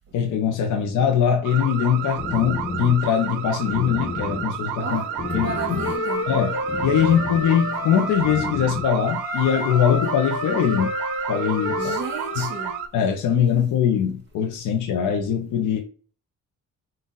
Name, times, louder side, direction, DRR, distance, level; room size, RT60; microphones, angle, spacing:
voice 1, 0.1-5.0 5.3-5.5 6.3-10.9 11.3-11.9 12.4-12.5 12.9-15.8, left 8 dB, 80° left, 0.8 m, -22 dB
sound 1, 1.4-12.9, right 10 dB, 85° right, 0.5 m, -31 dB
sound 2, 1.6-8.8, left 4 dB, 25° left, 0.8 m, -34 dB
voice 2, 4.8-6.3 11.8-12.7, right 5 dB, 40° right, 1.4 m, -33 dB
Wind instrument woodwind instrument, 5.2-8.5 9.0-12.8, left 4 dB, 55° left, 1.4 m, -31 dB
4.0 x 2.5 x 3.8 m
cardioid pair, 90°, 30 cm